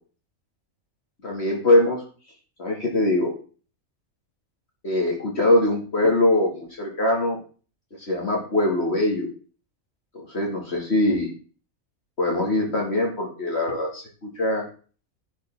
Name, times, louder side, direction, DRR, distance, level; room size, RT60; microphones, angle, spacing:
voice 1, 1.2-2.0 2.6-3.3 4.8-7.4 8.1-9.3 10.1-11.3 12.2-14.0 14.4-14.6, left 1 dB, 50° left, -1 dB, 2.8 m, -22 dB
11.0 x 8.1 x 3.8 m, 0.39 s
omnidirectional pair, 1.4 m